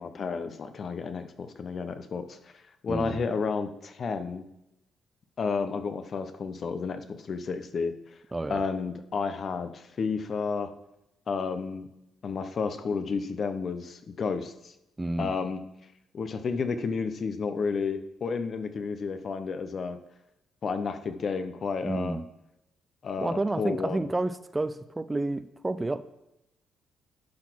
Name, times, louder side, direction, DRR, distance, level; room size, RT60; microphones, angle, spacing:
voice 1, 0.0-2.5 2.8-4.4 5.4-7.9 8.5-10.7 11.3-11.9 12.2-14.7 15.2-15.6 16.1-20.0 20.6-22.2 23.0-24.1, left 5 dB, 50° left, 9 dB, 0.8 m, -31 dB
voice 2, 2.9-3.2 8.3-8.6 15.0-15.3 21.8-22.3 23.2-26.0, right 2 dB, 15° right, 13 dB, 0.4 m, -30 dB
11.5 x 4.1 x 6.1 m, 0.88 s
cardioid pair, 90°, 0 cm